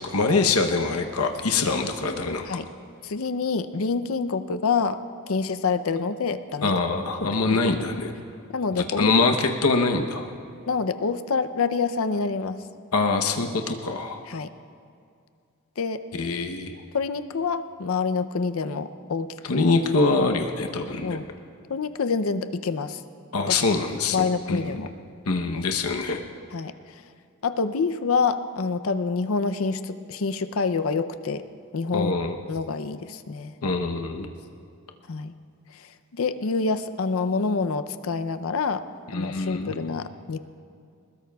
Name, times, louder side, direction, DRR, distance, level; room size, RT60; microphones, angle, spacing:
voice 1, 0.0-2.5 6.6-8.1 9.0-10.3 12.9-14.2 16.1-16.8 19.5-21.2 23.3-24.8 25.3-26.3 31.9-32.4 33.6-34.3 39.1-39.8, left 3 dB, 90° left, 4 dB, 0.9 m, -24 dB
voice 2, 3.0-5.0 5.3-6.7 7.5-7.7 8.5-9.1 10.7-12.6 14.3-14.5 15.8-16.0 16.9-19.6 21.0-21.2 21.7-23.0 23.5-23.6 24.1-24.9 26.5-27.0 27.4-31.5 31.7-32.2 32.5-33.5 35.1-35.3 35.7-38.9 39.1-40.4, left 4 dB, 70° left, 11 dB, 0.6 m, -27 dB
22.5 x 20.5 x 2.3 m, 2.3 s
head